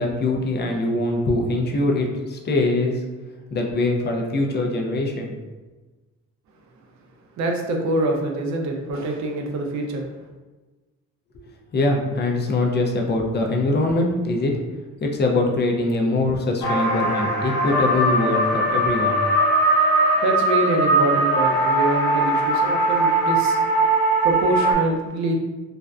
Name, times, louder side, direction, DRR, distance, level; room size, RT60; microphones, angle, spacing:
voice 1, 0.0-3.0 3.5-5.4 11.3-11.4 11.7-14.5 15.0-19.2, left 2 dB, 35° left, 1 dB, 0.5 m, -23 dB
voice 2, 7.4-10.0 20.2-23.6 24.2-25.3, right 1 dB, 65° right, 1 dB, 0.5 m, -25 dB
sound 1, 16.6-24.7, right 2 dB, 55° left, 0.9 m, -20 dB
2.5 x 2.1 x 2.3 m, 1.2 s
cardioid pair, 90°, 30 cm